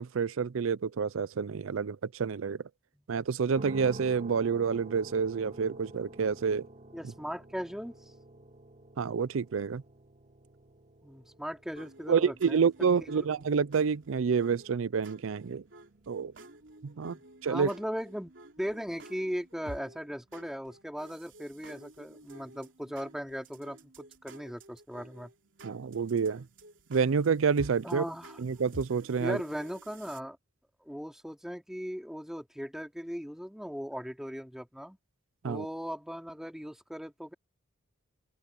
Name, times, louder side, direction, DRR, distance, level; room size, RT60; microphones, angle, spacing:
voice 1, 0.0-2.6 3.1-6.7 9.0-9.8 12.1-15.6 16.1-16.3 16.8-17.2 17.4-17.7 25.6-26.5 26.9-28.0 28.4-29.4 35.4-35.7, right 6 dB, 90° right, 0.5 m, -28 dB
sound 1, 3.5-17.6, right 1 dB, 35° right, 2.9 m, -50 dB
voice 2, 6.9-7.9 11.0-12.9 13.2-13.3 17.0-25.3 27.8-28.4 29.2-30.4 30.8-35.0 35.4-37.3, equal, 5° right, 2.7 m, -38 dB
sound 2, 11.8-30.2, right 1 dB, 70° right, 3.4 m, -52 dB
open air
head